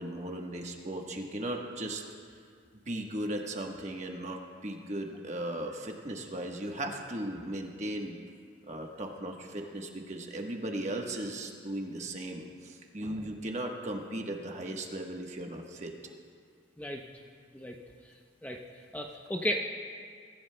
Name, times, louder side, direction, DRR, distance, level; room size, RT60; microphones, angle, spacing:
voice 1, 0.0-2.0 2.9-8.2 8.6-15.9, right 1 dB, 35° right, 2 dB, 1.2 m, -37 dB
voice 2, 18.9-19.6, equal, 10° left, 1 dB, 0.6 m, -33 dB
23.5 x 14.5 x 2.2 m, 2.1 s
head